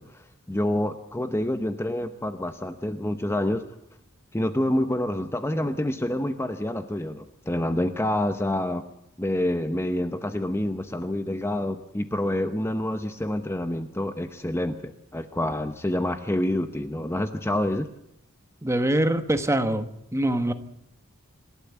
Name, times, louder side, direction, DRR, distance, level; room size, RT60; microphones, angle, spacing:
voice 1, 0.0-3.6 4.3-8.8 9.2-17.9, left 1 dB, 10° left, 8 dB, 0.8 m, -27 dB
voice 2, 18.6-20.5, right 1 dB, 15° right, 9 dB, 1.3 m, -24 dB
26.5 x 12.0 x 8.3 m, 0.79 s
head